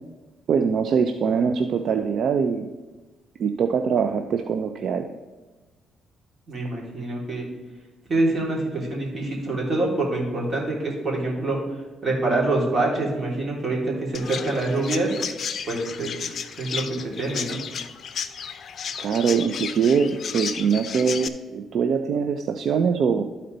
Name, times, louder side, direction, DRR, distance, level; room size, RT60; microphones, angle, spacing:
voice 1, 0.5-2.7 3.4-5.1 19.0-23.2, right 6 dB, 65° right, 7 dB, 0.4 m, -23 dB
voice 2, 6.5-7.4 8.1-11.6 12.0-15.1 15.7-16.2 16.6-17.6, right 2 dB, 35° right, -3 dB, 3.0 m, -25 dB
Chirp tweet, 14.1-21.3, left 7 dB, 55° left, 0.5 m, -33 dB
12.5 x 4.3 x 3.9 m, 1.2 s
cardioid pair, 90°, 0 cm